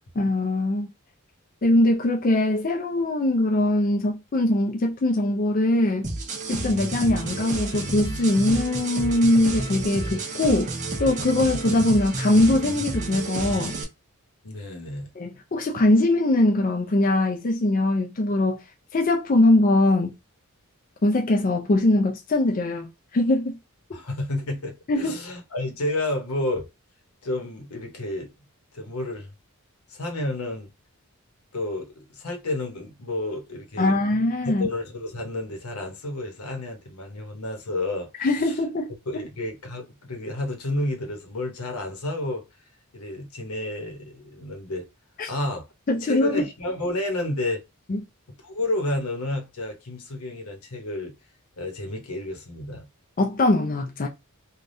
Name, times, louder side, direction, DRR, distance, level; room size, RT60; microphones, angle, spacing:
voice 1, 0.2-0.9 1.6-6.1 6.5-10.7 11.0-13.7 15.2-18.6 18.9-20.1 21.0-23.6 24.9-25.2 33.8-34.7 38.2-39.2 45.2-45.3 45.9-46.4 47.9-48.0 53.2-54.1, left 1 dB, 40° left, 0.4 m, -22 dB
sound 1, 6.0-13.8, right 2 dB, 35° right, 0.7 m, -30 dB
voice 2, 14.4-15.1 23.9-26.7 27.2-28.3 28.7-29.3 29.9-30.7 31.5-34.0 34.4-38.5 39.1-42.4 42.9-44.8 45.3-45.7 46.0-47.6 48.3-51.1 51.6-52.9, left 1 dB, 90° left, 1.0 m, -30 dB
3.3 x 2.3 x 2.6 m
head